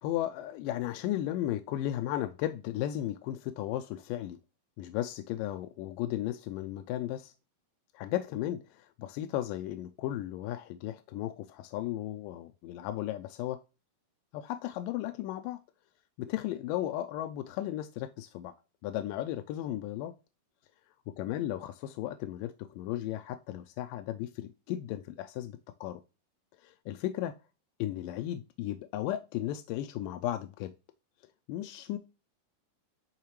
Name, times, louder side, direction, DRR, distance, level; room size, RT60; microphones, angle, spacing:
voice 1, 0.0-4.4 4.8-7.3 7.9-13.6 14.3-15.6 16.2-18.6 18.8-20.1 21.2-26.0 26.6-27.3 27.8-30.7 31.5-32.0, left 13 dB, 80° left, 2.0 m, -35 dB
10.5 x 3.7 x 3.1 m
omnidirectional pair, 4.2 m